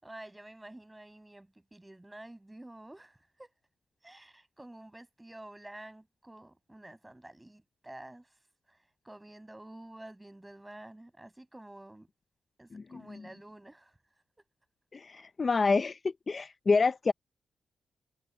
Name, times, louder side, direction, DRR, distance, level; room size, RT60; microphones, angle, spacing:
voice 1, 0.0-3.5 4.0-8.3 8.7-8.8 9.0-12.1 12.6-13.9, right 1 dB, 10° right, 6.0 m, -50 dB
voice 2, 14.9-16.0 16.3-17.1, left 4 dB, 35° left, 0.5 m, -27 dB
wide cardioid pair, 135°, 0 cm